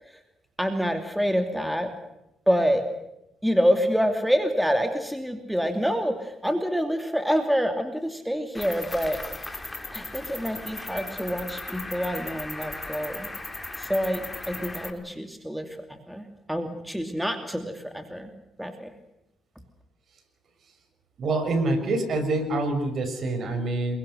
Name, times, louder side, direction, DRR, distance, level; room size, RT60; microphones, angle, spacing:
voice 1, 0.6-1.9 2.5-2.9 3.4-9.5 9.9-13.3 13.8-18.3 18.6-18.9, equal, 5° right, 5 dB, 2.8 m, -27 dB
Cricket, 8.5-14.9, left 2 dB, 15° left, 4.1 m, -37 dB
voice 2, 21.2-24.0, right 2 dB, 55° right, 7 dB, 6.5 m, -26 dB
28.5 x 23.0 x 6.6 m, 0.85 s
cardioid pair, 90°, 0 cm